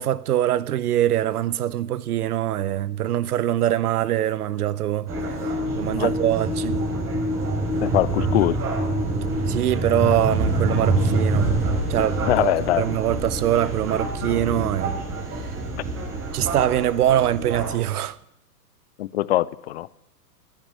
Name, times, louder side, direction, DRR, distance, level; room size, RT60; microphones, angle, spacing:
voice 1, 0.0-5.1 5.4-6.8 9.5-11.5 11.9-12.2 12.8-15.0 15.3-15.5 16.3-18.2, right 12 dB, 65° right, 0.7 m, -23 dB
sound 1, 5.1-17.8, right 2 dB, 25° right, 3.8 m, -26 dB
voice 2, 7.8-8.6 12.2-12.9 19.0-19.9, left 15 dB, 40° left, 0.6 m, -22 dB
10.5 x 10.0 x 9.3 m
hypercardioid pair, 125°, 49 cm